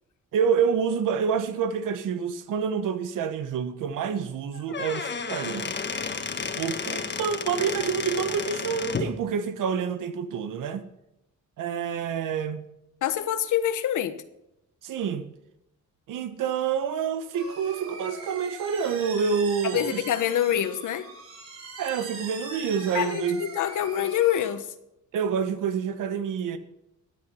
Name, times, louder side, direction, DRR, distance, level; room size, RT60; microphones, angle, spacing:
voice 1, 0.3-5.7 6.5-10.8 11.6-12.7 14.8-15.3 16.1-20.0 21.8-23.4 25.1-26.6, right 6 dB, 80° right, 1.4 m, -27 dB
Squeak / Wood, 4.5-9.1, left 5 dB, 35° left, 1.4 m, -32 dB
voice 2, 13.0-14.1 19.7-21.1 22.9-24.7, left 10 dB, 75° left, 1.3 m, -26 dB
sound 1, 17.3-24.5, right 3 dB, 45° right, 6.4 m, -41 dB
14.5 x 9.7 x 5.7 m
cardioid pair, 120°, 31 cm